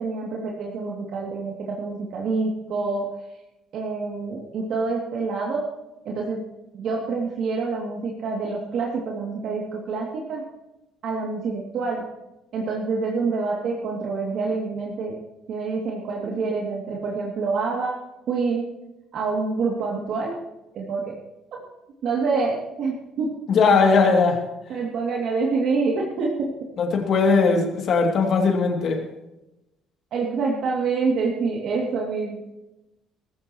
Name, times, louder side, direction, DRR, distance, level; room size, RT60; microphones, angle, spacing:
voice 1, 0.0-3.1 3.7-5.6 6.0-6.4 6.7-10.4 11.0-12.0 12.5-15.1 15.5-18.0 18.3-18.7 19.1-20.3 20.7-21.1 22.0-23.3 24.7-26.5 30.1-32.4, right 4 dB, 55° right, -3 dB, 2.7 m, -26 dB
voice 2, 23.5-24.5 26.8-29.0, left 4 dB, 50° left, 2 dB, 2.8 m, -19 dB
19.0 x 16.0 x 3.1 m, 0.95 s
cardioid pair, 145°, 0 cm